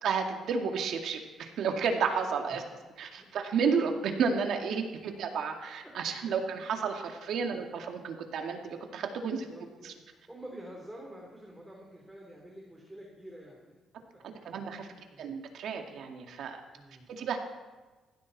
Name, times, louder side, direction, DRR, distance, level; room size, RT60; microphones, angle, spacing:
voice 1, 0.0-2.6 3.0-9.5 9.8-9.9 14.4-14.9 15.2-16.6 17.1-17.4, right 5 dB, 75° right, 3 dB, 2.2 m, -32 dB
voice 2, 9.2-13.7 14.3-15.4 16.8-17.1, right 1 dB, 5° right, -2 dB, 3.6 m, -49 dB
19.0 x 15.5 x 4.2 m, 1.3 s
cardioid pair, 90°, 0 cm